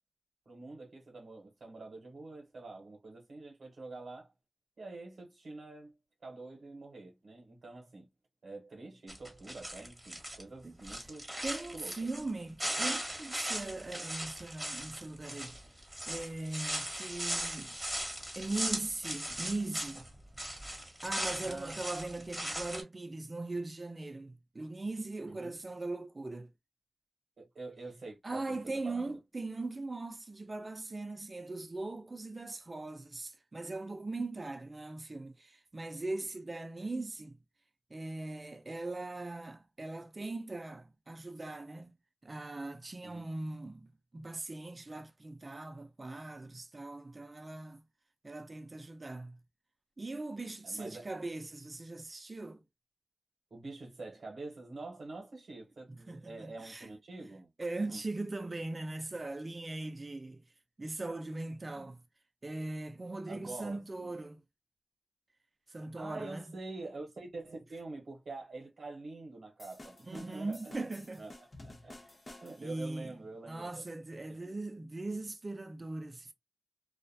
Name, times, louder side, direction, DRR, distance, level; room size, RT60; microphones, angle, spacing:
voice 1, 0.5-4.3 4.8-6.0 6.2-8.1 8.4-11.3 11.7-11.9 21.4-21.8 25.3-25.5 27.4-29.2 43.0-43.3 50.6-51.1 53.5-57.5 57.9-58.0 61.7-61.9 63.3-64.1 65.7-71.3 71.6-71.9 72.3-73.8 74.3-74.6, right 3 dB, 85° right, 0.9 m, -46 dB
sound 1, 9.1-10.4 10.8-12.3 12.6-20.1 20.3-22.8, equal, 10° right, 1.0 m, -38 dB
voice 2, 11.4-15.6 16.1-17.8 18.4-20.1 21.0-26.5 28.2-37.4 37.9-41.9 42.2-47.8 48.2-49.4 50.0-52.6 55.9-56.9 57.6-60.4 60.8-62.0 62.4-64.4 65.7-66.4 70.0-71.3 72.6-73.2 73.5-76.3, right 2 dB, 40° right, 0.5 m, -40 dB
sound 2, 69.6-72.8, left 1 dB, 50° left, 0.8 m, -52 dB
2.4 x 2.2 x 2.6 m
wide cardioid pair, 75°, 0 cm